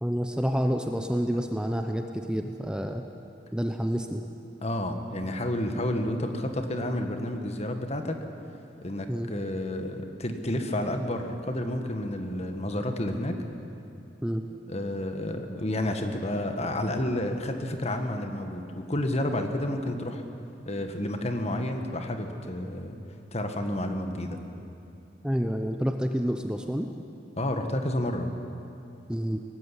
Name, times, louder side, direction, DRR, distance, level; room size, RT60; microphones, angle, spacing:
voice 1, 0.0-3.0 3.5-4.2 9.1-9.3 14.2-14.4 25.2-26.9 29.1-29.4, equal, 5° right, 5 dB, 0.8 m, -28 dB
voice 2, 4.6-8.2 8.8-13.4 14.7-20.2 20.6-23.0 23.3-24.4 27.4-28.3, left 1 dB, 35° left, 6 dB, 1.7 m, -30 dB
20.0 x 15.5 x 9.9 m, 2.7 s
head